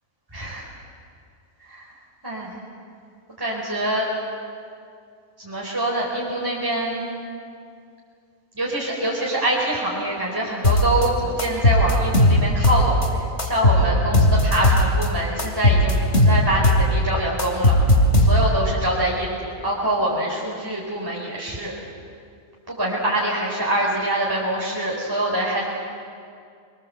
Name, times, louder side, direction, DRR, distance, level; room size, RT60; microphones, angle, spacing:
voice 1, 0.3-0.6 1.7-1.8 2.2-2.5 3.4-4.1 5.4-7.1 8.6-13.0 13.4-17.7 18.2-21.7 22.7-25.7, right 1 dB, 15° right, -5 dB, 4.4 m, -25 dB
sound 1, 10.6-11.1 11.4-13.1 13.4-15.1 15.4-16.9 17.1-18.7, left 1 dB, 50° left, 3.8 m, -17 dB
28.0 x 22.0 x 7.8 m, 2.3 s
omnidirectional pair, 1.5 m